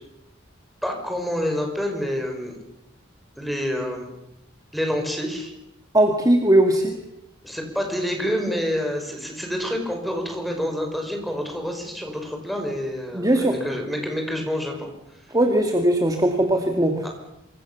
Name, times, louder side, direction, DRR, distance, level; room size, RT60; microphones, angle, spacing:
voice 1, 0.8-2.6 3.4-4.0 4.7-5.5 7.4-14.9 17.0-17.1, equal, ahead, 3 dB, 5.8 m, -28 dB
voice 2, 5.9-7.0 13.1-13.6 15.3-17.1, right 1 dB, 20° right, 4 dB, 2.2 m, -19 dB
27.5 x 25.0 x 7.2 m, 0.87 s
head